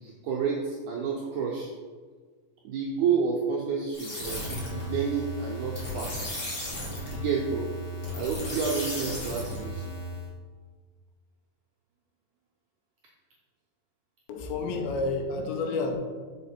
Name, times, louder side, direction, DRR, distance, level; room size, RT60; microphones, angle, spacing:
voice 1, 0.0-1.7 2.6-6.2 7.1-7.7 8.1-9.8, right 6 dB, 85° right, -3 dB, 1.7 m, -30 dB
sound 1, 3.9-10.3, left 1 dB, 50° left, 1.3 m, -35 dB
voice 2, 14.3-16.0, left 3 dB, 90° left, 4 dB, 2.5 m, -30 dB
6.0 x 4.2 x 4.3 m, 1.5 s
omnidirectional pair, 4.2 m